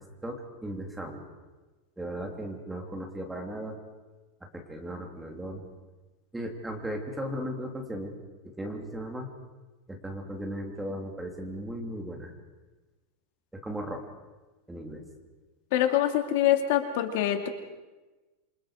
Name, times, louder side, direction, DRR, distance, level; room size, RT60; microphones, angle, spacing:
voice 1, 0.2-1.2 2.0-3.7 4.5-5.6 6.3-8.1 8.4-9.3 9.9-12.3 13.5-14.0 14.7-15.0, equal, 5° right, 2 dB, 2.9 m, -36 dB
voice 2, 15.7-17.5, left 11 dB, 55° left, 6 dB, 2.5 m, -25 dB
28.0 x 25.5 x 5.0 m, 1.2 s
supercardioid pair, 165°, 0 cm